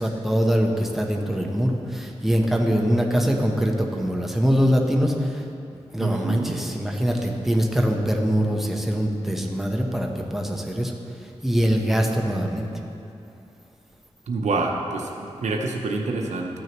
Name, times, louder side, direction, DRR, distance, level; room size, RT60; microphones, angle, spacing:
voice 1, 0.0-5.4 5.7-10.9 11.4-12.7, equal, ahead, 1 dB, 0.9 m, -23 dB
voice 2, 6.0-6.6 14.3-16.6, right 3 dB, 85° right, 1 dB, 0.8 m, -27 dB
13.5 x 6.3 x 3.0 m, 2.7 s
cardioid pair, 70°, 12 cm